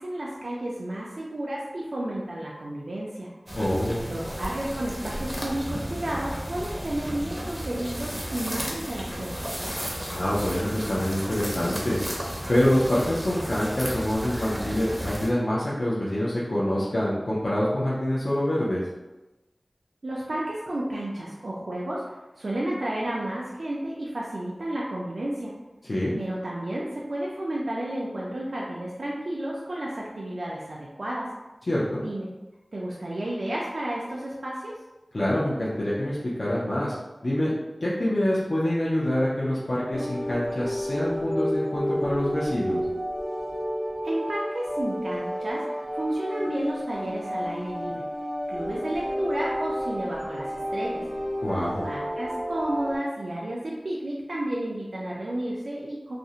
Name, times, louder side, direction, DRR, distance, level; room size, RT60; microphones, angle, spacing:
voice 1, 0.0-3.3 4.0-9.7 20.0-22.0 22.4-25.5 26.2-31.3 32.0-32.3 32.7-34.7 44.0-48.1 48.5-51.0 51.7-56.2, right 1 dB, 70° right, -5 dB, 0.3 m, -32 dB
sound 1, 3.5-15.3, equal, 10° right, 0.5 m, -34 dB
voice 2, 3.6-4.1 10.1-12.0 12.5-18.8 25.9-26.2 31.7-32.0 35.1-36.9 37.2-37.5 37.8-42.9 51.4-51.8, left 1 dB, 55° left, -8 dB, 0.4 m, -26 dB
sound 2, 39.9-53.0, equal, 25° left, 0.7 m, -31 dB
2.4 x 2.0 x 2.7 m, 1.1 s
wide cardioid pair, 65°, 0 cm